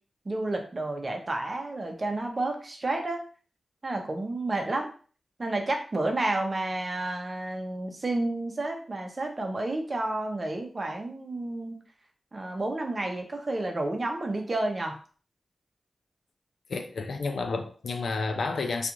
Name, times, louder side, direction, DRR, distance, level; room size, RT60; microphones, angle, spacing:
voice 1, 0.3-3.2 3.8-4.9 5.4-11.8 12.3-15.0, right 2 dB, 45° right, 0.6 m, -30 dB
voice 2, 16.7-18.9, left 4 dB, 80° left, 0.3 m, -30 dB
2.4 x 2.4 x 2.9 m
cardioid pair, 55°, 0 cm